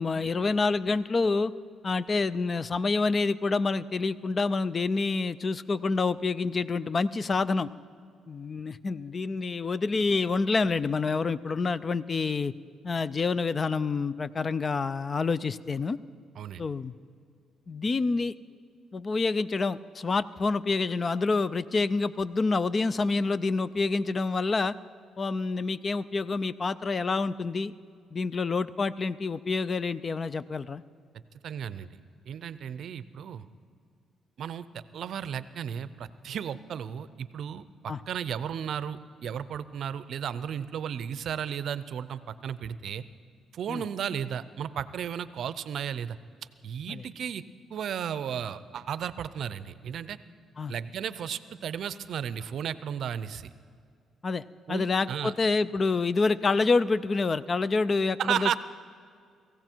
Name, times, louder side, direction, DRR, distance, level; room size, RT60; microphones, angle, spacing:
voice 1, 0.0-1.5 1.8-7.7 8.3-12.5 12.8-16.0 16.6-16.9 17.7-18.3 18.9-24.7 25.2-27.7 28.1-30.8 37.9-38.0 43.7-43.8 46.9-47.0 50.6-50.7 54.2-58.6, left 4 dB, 35° left, 17 dB, 0.4 m, -27 dB
voice 2, 31.4-31.9 32.3-33.4 34.4-43.0 43.5-46.2 46.6-47.4 47.7-50.2 50.7-53.5 54.7-55.3 58.2-58.6, right 8 dB, 65° right, 15 dB, 0.5 m, -34 dB
18.5 x 15.5 x 4.5 m, 2.2 s
cardioid pair, 90°, 0 cm